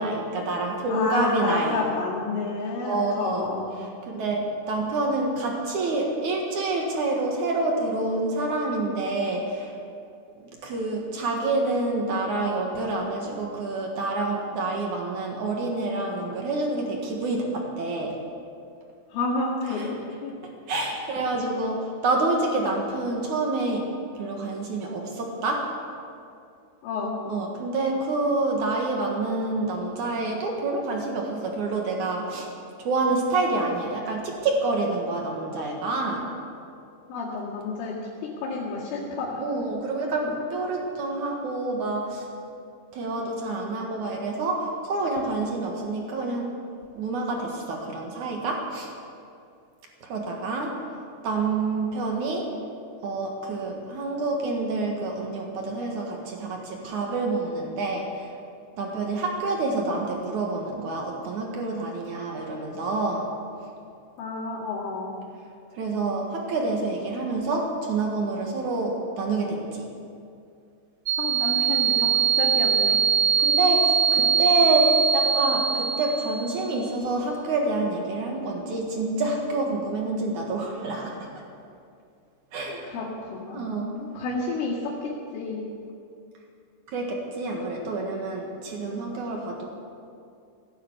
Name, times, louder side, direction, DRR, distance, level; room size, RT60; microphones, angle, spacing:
voice 1, 0.0-1.8 2.8-3.5 4.1-9.7 10.6-18.1 19.7-19.9 20.7-23.9 24.2-25.7 27.3-32.5 32.8-36.3 39.4-42.3 42.9-46.5 46.9-48.9 50.0-50.8 51.2-52.5 53.0-58.3 58.8-63.3 65.8-69.9 73.4-81.3 82.5-82.9 83.5-84.0 86.9-89.7, right 2 dB, 60° right, 0 dB, 2.2 m, -27 dB
voice 2, 0.9-3.7 19.1-19.9 20.2-20.3 26.8-27.3 37.1-37.9 38.4-39.4 64.2-65.2 71.2-72.1 72.4-73.0 82.9-83.6 83.9-85.6, left 3 dB, 85° left, -8 dB, 4.7 m, -30 dB
sound 1, 71.1-76.7, right 7 dB, 85° right, 3.7 m, -22 dB
16.5 x 10.5 x 8.2 m, 2.5 s
omnidirectional pair, 5.5 m